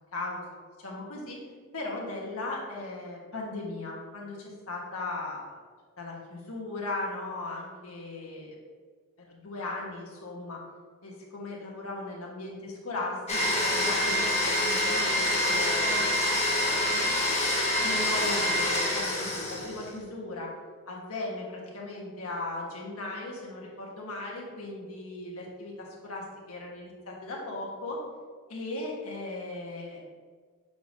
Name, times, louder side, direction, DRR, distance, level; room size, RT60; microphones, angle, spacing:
voice 1, 0.1-0.4 0.8-1.4 1.7-5.6 6.0-8.5 9.3-10.6 11.0-15.9 16.5-17.1 17.8-20.5 20.9-28.0 28.5-30.0, left 2 dB, 85° left, -2 dB, 1.5 m, -37 dB
Domestic sounds home sounds, 13.3-19.9, left 1 dB, 30° left, 1.5 m, -26 dB
6.8 x 5.3 x 2.7 m, 1.5 s
head